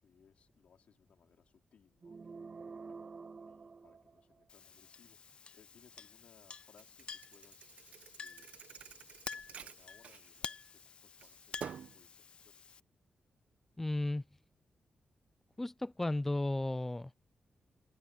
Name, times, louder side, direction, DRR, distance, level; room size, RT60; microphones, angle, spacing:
voice 1, 0.0-2.4 2.8-7.8 8.2-9.1 9.3-11.7 11.9-12.6, left 7 dB, 70° left, 4.7 m, -67 dB
sound 1, 2.0-4.7, right 4 dB, 35° right, 0.7 m, -49 dB
Chink clink, 4.5-12.8, left 5 dB, 50° left, 0.6 m, -49 dB
Thump thud, 6.8-10.8 11.2-12.0, right 8 dB, 75° right, 1.0 m, -49 dB
voice 2, 13.8-14.2 15.6-17.1, left 2 dB, 10° left, 0.3 m, -34 dB
wide cardioid pair, 115°, 2 cm